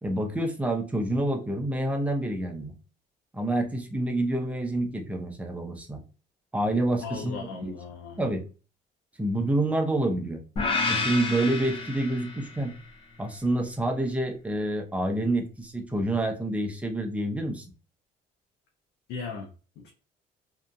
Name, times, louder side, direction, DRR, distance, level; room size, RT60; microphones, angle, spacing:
voice 1, 0.0-2.7 3.3-6.0 6.5-7.7 8.2-8.4 9.2-10.4 10.9-12.7 13.2-17.6, right 1 dB, 10° right, 0.6 m, -28 dB
voice 2, 7.0-8.2 19.1-19.5 19.8-19.9, left 5 dB, 85° left, 0.5 m, -37 dB
sound 1, 10.6-12.8, left 3 dB, 35° left, 0.6 m, -29 dB
2.8 x 2.4 x 2.3 m
cardioid pair, 110°, 17 cm